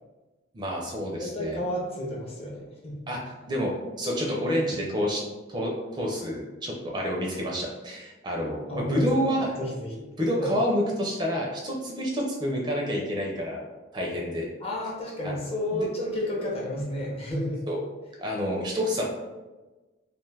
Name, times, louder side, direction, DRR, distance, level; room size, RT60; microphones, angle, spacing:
voice 1, 0.5-1.6 3.1-3.2 3.5-3.7 4.0-5.2 5.5-9.5 10.2-13.6 13.9-14.5 15.2-15.4 15.7-15.9 17.7-17.8 18.2-19.2, equal, 25° right, -2 dB, 0.4 m, -28 dB
voice 2, 1.2-3.0 8.7-9.1 9.6-10.0 10.4-10.6 14.6-17.7, left 1 dB, 30° left, -3 dB, 0.6 m, -31 dB
2.4 x 2.3 x 3.2 m, 1.2 s
head